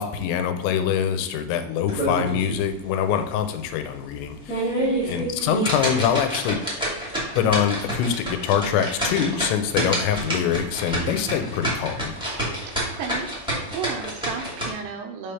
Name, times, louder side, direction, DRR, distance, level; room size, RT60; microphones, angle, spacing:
voice 1, 0.0-6.6 7.4-12.1, left 8 dB, 85° left, 8 dB, 3.0 m, -24 dB
sound 1, 1.9-2.6 3.0-3.1 3.6-3.7 4.3-14.7, right 1 dB, 10° right, 0.3 m, -28 dB
voice 2, 4.8-5.3 12.8-13.3 13.7-15.3, right 6 dB, 85° right, 4 dB, 2.6 m, -34 dB
7.3 x 3.4 x 5.6 m, 0.91 s
omnidirectional pair, 5.2 m